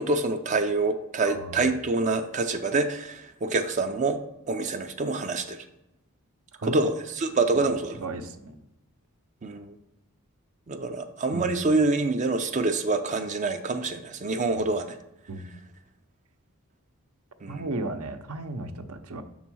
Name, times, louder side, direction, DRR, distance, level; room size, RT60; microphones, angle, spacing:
voice 1, 0.0-4.2 4.5-5.6 6.6-8.0 9.4-9.8 10.7-15.0 17.4-17.7, right 3 dB, 35° right, 6 dB, 0.5 m, -26 dB
voice 2, 1.3-1.7 6.5-6.9 7.5-7.7 8.0-8.6 11.3-11.5 14.4-14.6 15.3-15.5 17.5-19.2, right 2 dB, 70° right, 8 dB, 0.7 m, -35 dB
6.2 x 4.0 x 6.1 m, 0.89 s
head